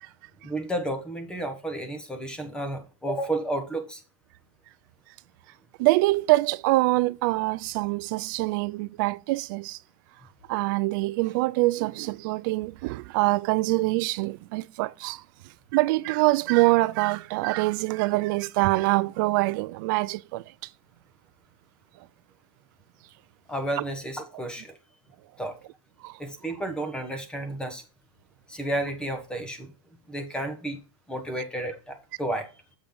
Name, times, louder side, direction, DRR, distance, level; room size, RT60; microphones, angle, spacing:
voice 1, 0.4-4.0 23.5-24.8 25.4-25.6 26.2-27.8 28.5-29.7 30.1-30.8 31.1-32.5, right 1 dB, 5° left, 1.0 m, -32 dB
voice 2, 5.8-9.8 10.5-15.2 15.7-20.4 26.0-26.2, right 21 dB, 35° right, 0.3 m, -24 dB
7.2 x 5.0 x 3.8 m
supercardioid pair, 160°, 18 cm